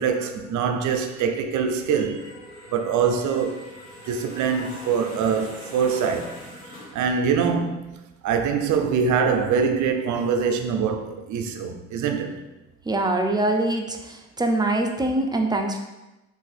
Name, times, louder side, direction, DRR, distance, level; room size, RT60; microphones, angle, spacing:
voice 1, 0.0-2.3 2.7-3.6 4.0-6.4 6.9-7.8 8.2-12.4, right 6 dB, 70° right, 0.5 m, -24 dB
sound 1, 2.1-7.1, left 1 dB, 65° left, 1.2 m, -42 dB
voice 2, 12.9-15.8, right 2 dB, 15° right, 0.4 m, -24 dB
3.4 x 2.6 x 4.0 m
cardioid pair, 90°, 30 cm